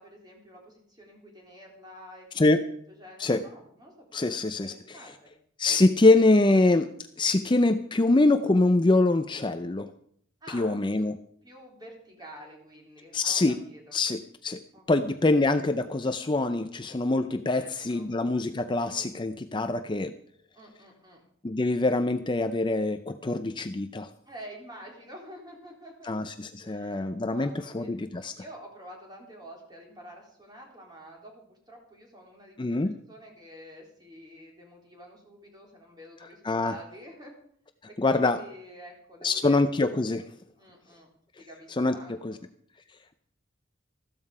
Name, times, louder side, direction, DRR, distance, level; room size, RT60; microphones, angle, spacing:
voice 1, 0.0-2.6 2.9-5.3 10.4-11.1 11.4-14.0 14.7-15.2 17.5-18.1 20.5-21.2 24.3-26.3 26.6-27.9 28.3-32.8 33.1-37.4 37.9-39.6 40.6-41.1 41.4-42.4, equal, 20° right, 0 dB, 3.6 m, -48 dB
voice 2, 4.1-5.0 5.6-6.9 7.2-9.9 10.5-11.2 13.1-13.6 13.9-14.6 14.9-20.1 21.4-24.1 26.0-28.3 32.6-33.0 36.4-36.7 38.0-38.4 39.2-40.3 41.8-42.0 42.2-42.4, left 2 dB, 25° left, 9 dB, 0.5 m, -24 dB
14.0 x 13.0 x 4.9 m, 0.65 s
head